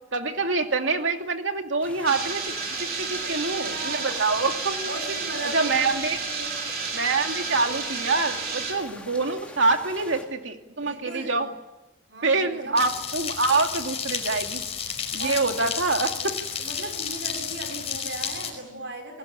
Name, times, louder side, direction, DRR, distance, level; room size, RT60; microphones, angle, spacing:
voice 1, 0.1-2.5 3.0-4.9 5.5-6.2 6.9-11.5 12.2-14.6 15.1-16.3, right 3 dB, 85° right, 5 dB, 2.5 m, -25 dB
sound 1, 1.8-10.2, left 1 dB, 5° left, 3.6 m, -44 dB
sound 2, 2.1-8.7, right 4 dB, 50° right, 4.8 m, -31 dB
voice 2, 3.0-4.2 4.9-6.6 10.8-11.5 12.1-12.8 15.2-15.8 16.6-19.2, right 2 dB, 70° right, 4 dB, 5.8 m, -37 dB
sound 3, 12.8-18.5, left 7 dB, 35° left, 5.3 m, -32 dB
29.0 x 20.0 x 8.6 m, 1.0 s
head